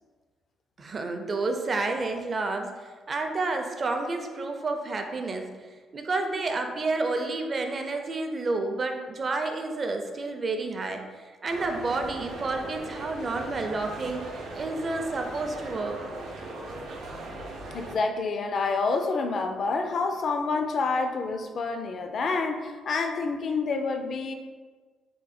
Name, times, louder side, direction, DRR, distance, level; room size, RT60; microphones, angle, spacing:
voice 1, 0.8-5.5 5.9-14.2 14.5-16.0, right 3 dB, 40° right, 4 dB, 0.4 m, -30 dB
sound 1, 11.5-18.0, right 2 dB, 85° right, 0.7 m, -39 dB
voice 2, 17.7-24.3, left 4 dB, 55° left, 5 dB, 0.4 m, -28 dB
3.6 x 2.2 x 4.1 m, 1.4 s
cardioid pair, 90°, 0 cm